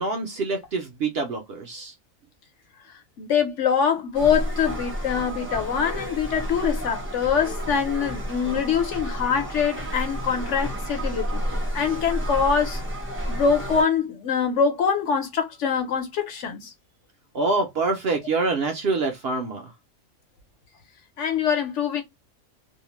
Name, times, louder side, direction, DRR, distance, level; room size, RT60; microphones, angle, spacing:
voice 1, 0.0-1.9 17.3-19.7, right 3 dB, 60° right, 0.7 m, -26 dB
voice 2, 3.2-11.4 11.7-12.8 13.3-16.7 21.2-22.0, left 6 dB, 65° left, 1.0 m, -24 dB
sound 1, 4.1-13.8, equal, 15° right, 0.5 m, -31 dB
2.6 x 2.1 x 3.0 m
omnidirectional pair, 1.4 m